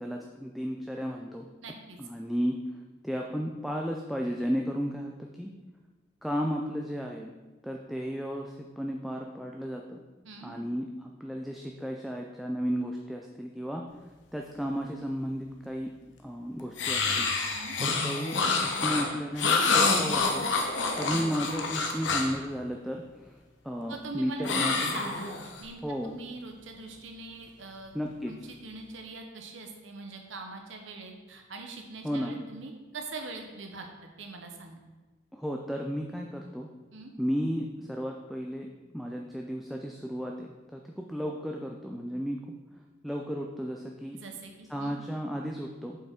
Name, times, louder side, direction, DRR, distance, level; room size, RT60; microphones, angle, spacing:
voice 1, 0.0-1.5 2.0-2.5 3.0-5.5 6.2-7.3 7.6-10.0 10.4-13.8 14.3-15.9 16.2-17.3 17.8-20.5 21.0-23.3 23.6-24.9 25.8-26.1 27.9-28.3 32.0-32.4 35.3-36.7 37.2-38.7 38.9-42.4 43.0-44.2 44.7-46.0, equal, ahead, 0 dB, 0.4 m, -33 dB
voice 2, 1.6-2.0 10.2-10.5 17.5-17.8 21.0-21.3 23.9-27.9 28.3-33.9 34.2-34.8 36.9-37.1 44.2-45.0, right 3 dB, 85° right, 3 dB, 1.0 m, -43 dB
sound 1, 16.8-22.4 24.4-25.6, left 4 dB, 75° left, 1.1 m, -27 dB
7.9 x 5.7 x 4.4 m, 1.2 s
head